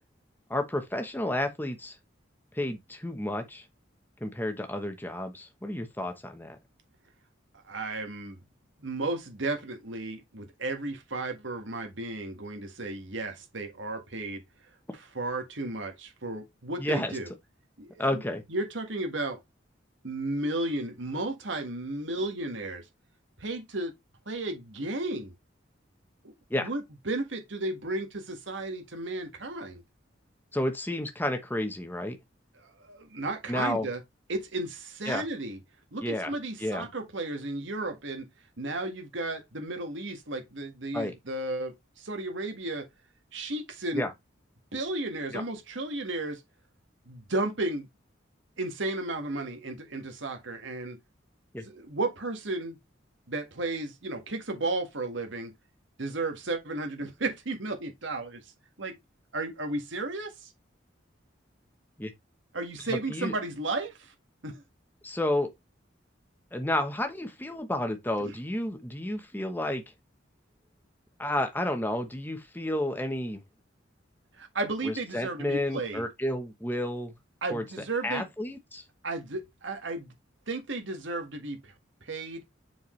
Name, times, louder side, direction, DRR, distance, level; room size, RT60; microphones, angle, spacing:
voice 1, 0.5-1.9 2.5-3.6 4.2-6.6 16.8-17.2 18.0-18.4 26.5-26.7 30.5-32.2 33.5-33.9 35.1-35.2 36.0-36.3 36.6-36.9 40.9-41.1 43.9-44.1 45.3-45.4 51.5-51.6 62.0-62.1 62.9-63.3 65.0-65.5 66.5-69.8 71.2-73.4 74.8-77.1 77.5-77.6 78.0-78.8, left 1 dB, 10° left, 1.0 m, -31 dB
voice 2, 7.7-8.4 8.8-14.4 15.1-17.3 17.8-18.2 18.5-19.4 20.0-22.9 23.4-23.9 24.3-25.3 26.2-29.8 32.6-34.0 34.3-35.6 35.9-38.3 38.6-42.9 43.3-44.1 44.7-46.4 47.1-47.9 48.6-51.0 51.7-52.8 53.3-55.5 56.0-58.4 58.8-59.0 59.3-60.5 62.5-64.1 64.4-64.6 68.2-68.3 74.4-76.0 77.4-78.3 79.0-80.1 80.5-81.7 82.1-82.4, right 2 dB, 75° right, 1.8 m, -34 dB
7.1 x 4.6 x 3.2 m
head